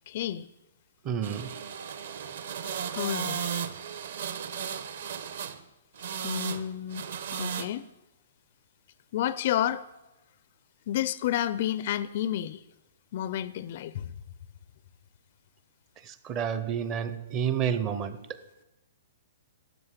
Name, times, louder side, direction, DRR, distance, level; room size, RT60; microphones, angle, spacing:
voice 1, 0.1-0.5 2.9-3.5 6.2-7.0 7.4-7.9 9.1-9.8 10.9-12.6 13.1-14.1, left 11 dB, 35° left, 0.4 m, -30 dB
voice 2, 1.1-1.5 16.2-18.2, right 8 dB, 15° right, 0.6 m, -29 dB
sound 1, 1.2-5.6 6.0-6.7 6.9-7.7, right 7 dB, 50° right, 0.9 m, -35 dB
13.0 x 8.2 x 9.7 m
hypercardioid pair, 180°, 0 cm